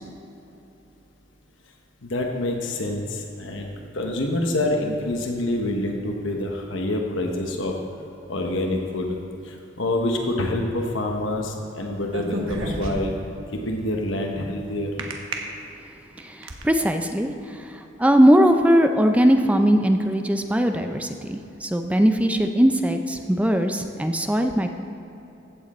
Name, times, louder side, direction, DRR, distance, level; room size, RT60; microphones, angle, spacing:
voice 1, 2.0-7.7 8.3-9.2 9.4-13.1 13.5-15.1, left 1 dB, 75° left, 2 dB, 1.0 m, -27 dB
sound 1, 12.0-13.3 15.0-15.3 16.0-16.6, right 1 dB, 85° right, 1.3 m, -29 dB
voice 2, 16.2-24.7, equal, 5° right, 6 dB, 0.4 m, -20 dB
15.0 x 7.6 x 4.2 m, 2.9 s
head